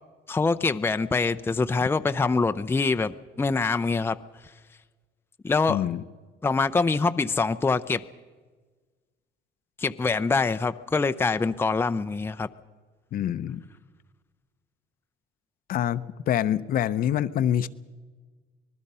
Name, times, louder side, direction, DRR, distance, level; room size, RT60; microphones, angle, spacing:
voice 1, 0.3-4.2 5.4-5.8 6.4-8.0 9.8-12.5, left 4 dB, 15° left, 10 dB, 0.6 m, -24 dB
voice 2, 5.7-6.0 13.1-13.6 15.7-17.7, left 10 dB, 60° left, 12 dB, 0.8 m, -26 dB
25.0 x 20.0 x 5.6 m, 1.4 s
cardioid pair, 110°, 17 cm